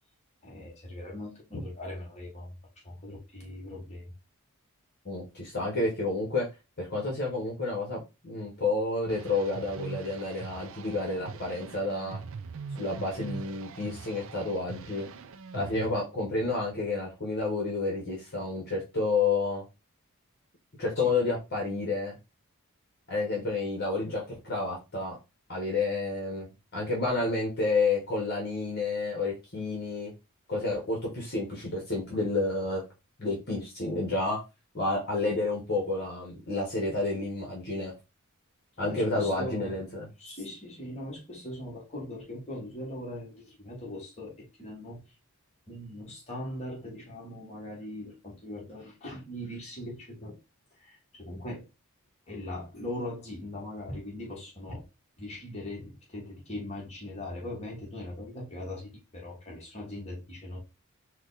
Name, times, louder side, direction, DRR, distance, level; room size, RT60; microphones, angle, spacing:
voice 1, 0.4-2.5 2.8-4.1 21.0-21.2 38.8-39.8 40.2-45.1 45.7-50.4 50.8-51.7 52.3-54.8 55.2-60.6, left 1 dB, 30° left, 1.7 m, -40 dB
voice 2, 5.0-6.5 6.8-12.2 12.8-15.1 15.5-19.6 20.8-22.2 23.1-25.2 25.5-26.5 26.7-30.1 30.5-32.8 33.2-34.4 34.7-37.9 38.8-40.1, left 3 dB, 45° left, 1.4 m, -30 dB
sound 1, 9.1-15.9, right 5 dB, 60° right, 0.4 m, -42 dB
4.7 x 2.4 x 4.1 m
head